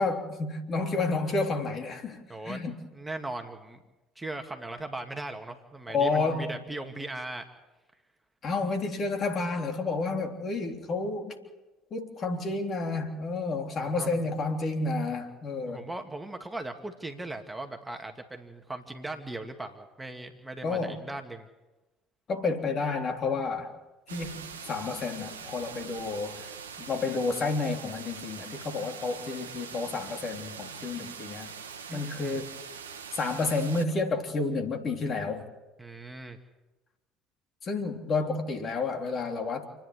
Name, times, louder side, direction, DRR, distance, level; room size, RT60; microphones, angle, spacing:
voice 1, 0.0-2.8 5.9-6.5 8.4-11.4 11.9-15.8 20.6-21.0 22.3-23.7 24.1-26.5 26.8-31.5 31.9-32.5 33.1-35.5 37.6-39.7, left 3 dB, 40° left, 4 dB, 3.5 m, -30 dB
voice 2, 2.3-2.6 2.9-3.8 4.2-7.5 13.8-14.2 15.7-21.5 31.9-32.4 35.8-36.4, right 2 dB, 10° right, 4 dB, 2.3 m, -39 dB
sound 1, 24.1-33.8, right 6 dB, 85° right, 1.1 m, -43 dB
28.5 x 10.5 x 9.7 m, 1.1 s
hypercardioid pair, 65°, 0 cm